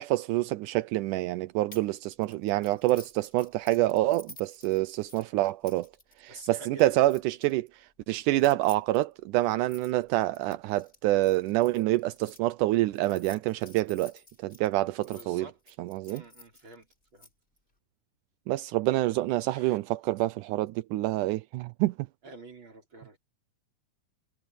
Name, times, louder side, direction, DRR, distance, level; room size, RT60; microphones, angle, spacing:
voice 1, 0.0-5.9 6.2-14.1 14.4-15.5 15.8-16.2 18.5-22.0, right 17 dB, 80° right, 1.9 m, -27 dB
sound 1, 1.7-1.9 2.2-7.5 8.3-12.4 12.9-15.2 15.7-17.3, left 1 dB, 15° left, 3.6 m, -52 dB
voice 2, 6.3-7.0 15.0-15.6 16.1-16.9 17.1-17.3 19.5-19.8 22.2-23.2, right 2 dB, 30° right, 5.9 m, -48 dB
omnidirectional pair, 4.1 m